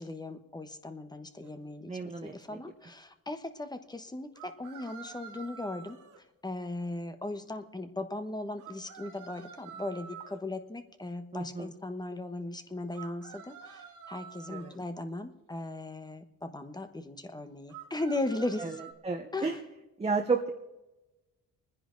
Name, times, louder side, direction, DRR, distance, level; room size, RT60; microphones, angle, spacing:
voice 1, 0.0-6.0 6.4-18.8 19.3-19.5, left 2 dB, 15° left, 8 dB, 1.1 m, -38 dB
sound 1, 1.4-1.5 4.3-6.2 8.6-10.4 12.9-14.8 17.7-18.9, right 7 dB, 85° right, 1.8 m, -48 dB
voice 2, 1.9-2.6 11.3-11.7 14.5-14.7 18.6-18.8 19.0-19.6 20.0-20.5, right 4 dB, 20° right, 2 dB, 1.2 m, -32 dB
24.5 x 10.5 x 3.9 m, 1.0 s
cardioid pair, 90°, 30 cm